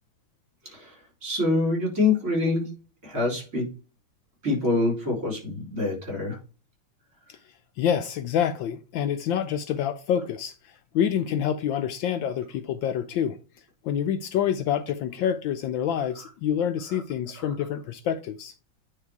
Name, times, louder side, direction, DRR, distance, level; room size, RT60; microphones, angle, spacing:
voice 1, 1.2-2.6 3.0-3.6 4.4-6.4, left 3 dB, 40° right, 4.1 m, -25 dB
voice 2, 7.8-10.5 10.9-13.4 13.8-18.5, left 9 dB, 75° left, 1.2 m, -27 dB
9.3 x 3.5 x 4.6 m
omnidirectional pair, 2.3 m